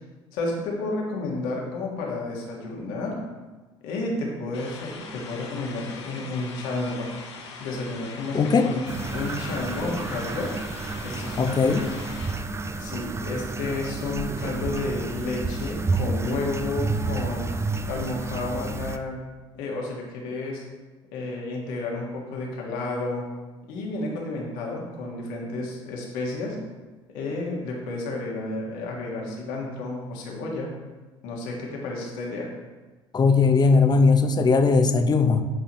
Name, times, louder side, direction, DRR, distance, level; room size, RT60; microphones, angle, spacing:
voice 1, 0.3-3.2 3.8-7.1 7.6-8.9 9.1-10.5 11.0-11.8 12.8-17.5 17.9-19.2 19.6-20.6 21.1-23.2 23.7-26.6 27.1-30.7 31.2-32.5, left 2 dB, 70° left, -1 dB, 1.5 m, -31 dB
sound 1, 4.5-12.3, left 4 dB, 90° left, 0.7 m, -41 dB
voice 2, 8.3-8.7 11.4-11.9 33.1-35.4, left 4 dB, 30° left, 7 dB, 0.6 m, -19 dB
sound 2, 8.9-19.0, right 3 dB, 20° right, 0.5 m, -30 dB
8.8 x 4.1 x 3.0 m, 1.3 s
hypercardioid pair, 65°, 14 cm